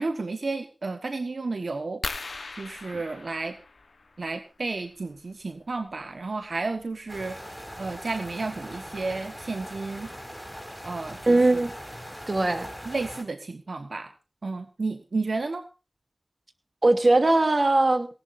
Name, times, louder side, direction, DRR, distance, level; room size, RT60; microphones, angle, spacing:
voice 1, 0.0-2.0 2.6-3.5 4.2-7.4 7.8-10.1 10.8-11.4 12.8-14.1 14.4-15.6, right 3 dB, 85° right, 1.3 m, -32 dB
sound 1, 2.0-4.4 6.0-6.2 6.8-6.9 7.1-7.4, left 3 dB, 90° left, 1.1 m, -38 dB
sound 2, 7.1-13.2, equal, 5° right, 7.1 m, -41 dB
voice 2, 11.3-11.7 12.3-12.7 16.8-18.1, right 2 dB, 60° right, 2.6 m, -20 dB
19.0 x 18.5 x 2.6 m
wide cardioid pair, 50°, 0 cm